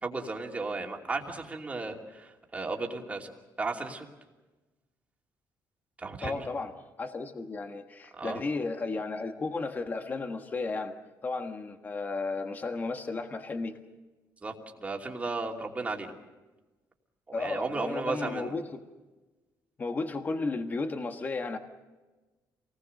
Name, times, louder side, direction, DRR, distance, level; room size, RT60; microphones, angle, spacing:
voice 1, 0.0-3.3 3.6-4.1 6.0-6.5 8.1-8.4 14.4-16.1 17.3-18.5, right 3 dB, 20° right, 1 dB, 2.8 m, -34 dB
voice 2, 6.2-6.7 7.0-10.9 11.2-13.8 17.3-18.8 19.8-21.6, left 3 dB, 25° left, 6 dB, 1.5 m, -34 dB
27.5 x 20.0 x 6.6 m, 1.1 s
cardioid pair, 155°, 7 cm